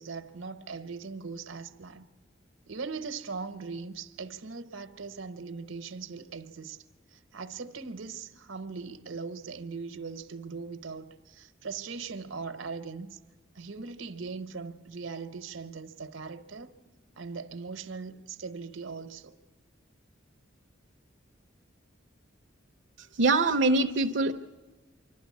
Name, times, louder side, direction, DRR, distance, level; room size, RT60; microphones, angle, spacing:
voice 1, 0.0-2.1 2.7-6.8 7.1-13.2 13.5-16.8 17.2-19.4, right 4 dB, 85° right, 1.0 m, -40 dB
voice 2, 23.2-24.3, right 2 dB, 65° right, 0.7 m, -23 dB
26.0 x 12.5 x 8.5 m
head